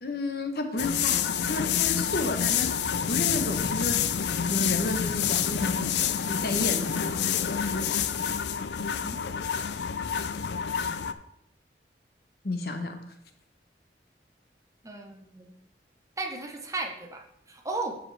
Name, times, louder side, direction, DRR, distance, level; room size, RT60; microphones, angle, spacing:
voice 1, 0.0-2.7 3.1-4.1 4.4-7.5 7.7-8.2 12.4-13.0, left 2 dB, 60° left, 6 dB, 1.0 m, -32 dB
sound 1, 0.8-11.1, left 8 dB, 80° left, 0.4 m, -28 dB
voice 2, 8.8-9.2 14.8-15.5 16.2-18.0, right 3 dB, 20° right, 3 dB, 0.8 m, -35 dB
13.5 x 4.9 x 3.3 m, 0.74 s
head